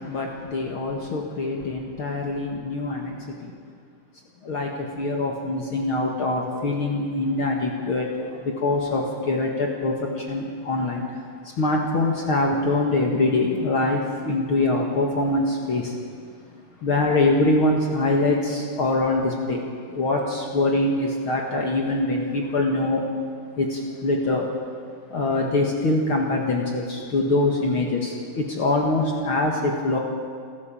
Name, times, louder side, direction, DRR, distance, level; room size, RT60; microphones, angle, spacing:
voice 1, 0.0-3.5 4.4-11.0 11.6-15.9 16.8-23.0 23.6-24.5 25.1-30.0, left 2 dB, 45° left, 0 dB, 2.1 m, -24 dB
29.0 x 12.0 x 7.5 m, 2.1 s
omnidirectional pair, 3.8 m